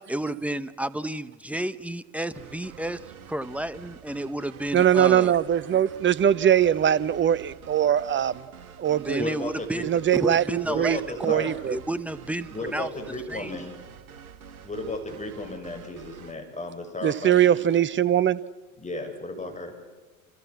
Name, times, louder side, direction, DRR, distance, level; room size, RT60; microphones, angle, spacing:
voice 1, 0.1-5.3 8.9-11.0 11.3-11.4 11.7-12.9 13.3-13.7, right 1 dB, 5° right, 1.2 m, -31 dB
sound 1, 2.3-16.3, right 7 dB, 80° right, 1.5 m, -47 dB
voice 2, 4.7-8.4 8.8-9.2 9.8-11.8 17.0-18.4, right 10 dB, 25° right, 1.0 m, -21 dB
voice 3, 9.2-9.9 10.6-11.5 12.5-13.7 14.6-17.7 18.8-19.7, left 2 dB, 15° left, 7.4 m, -34 dB
29.5 x 27.0 x 7.3 m
figure-of-eight pair, 70°, 43 cm